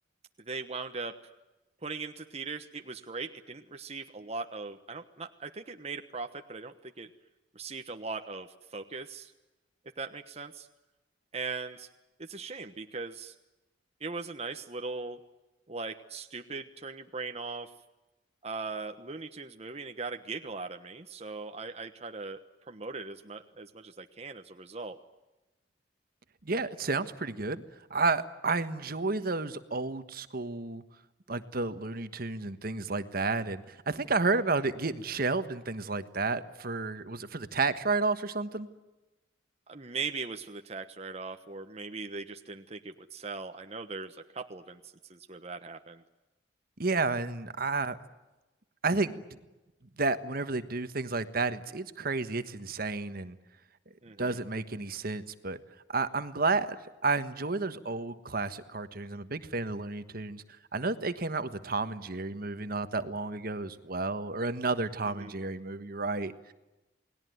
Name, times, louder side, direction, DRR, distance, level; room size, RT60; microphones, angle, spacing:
voice 1, 0.5-1.2 1.8-7.1 7.5-9.3 10.0-10.7 11.3-11.9 12.2-13.3 14.0-15.2 15.7-17.7 18.4-22.4 22.7-25.0 39.7-44.8 45.1-46.0 54.0-54.4 65.0-65.3, right 4 dB, 35° right, 6 dB, 1.2 m, -39 dB
voice 2, 26.4-27.6 27.9-30.8 31.3-38.7 46.8-48.0 48.8-49.2 50.0-53.4 54.2-55.6 55.9-56.8 57.0-60.4 60.7-66.5, right 3 dB, 55° right, 11 dB, 1.4 m, -31 dB
29.5 x 20.0 x 9.4 m, 1.1 s
head